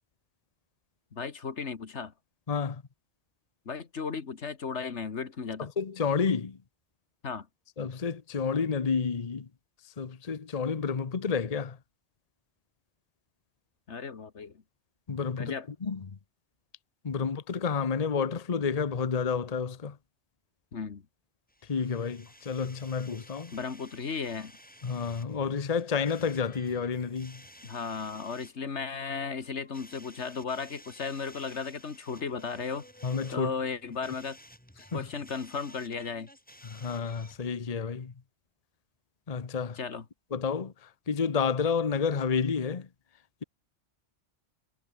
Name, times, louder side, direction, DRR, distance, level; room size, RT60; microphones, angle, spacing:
voice 1, 1.1-2.1 3.7-5.7 7.2-7.5 13.9-14.6 15.4-15.7 20.7-21.0 23.5-24.5 27.6-32.9 33.3-34.4 34.9-36.3 39.8-40.1, left 5 dB, 75° left, 1.9 m, -35 dB
voice 2, 2.5-2.8 5.6-6.6 7.8-9.5 9.8-11.8 15.1-15.5 15.8-16.2 17.0-20.0 21.6-23.5 24.8-27.4 33.0-33.5 34.9-35.1 36.6-38.1 39.3-39.8 40.3-42.9, left 5 dB, 35° left, 1.0 m, -30 dB
sound 1, 21.5-37.5, equal, 5° left, 5.4 m, -54 dB
omnidirectional pair, 1.2 m